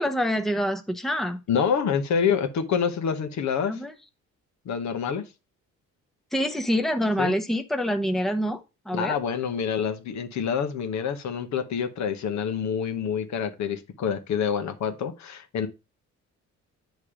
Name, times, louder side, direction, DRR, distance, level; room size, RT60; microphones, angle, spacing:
voice 1, 0.0-1.4 3.7-3.9 6.3-8.6 8.9-9.2, equal, ahead, 0.8 m, -26 dB
voice 2, 1.5-3.8 4.6-5.2 7.2-7.3 8.9-15.7, left 7 dB, 65° left, 1.1 m, -27 dB
8.7 x 3.2 x 4.9 m
cardioid pair, 90°, 30 cm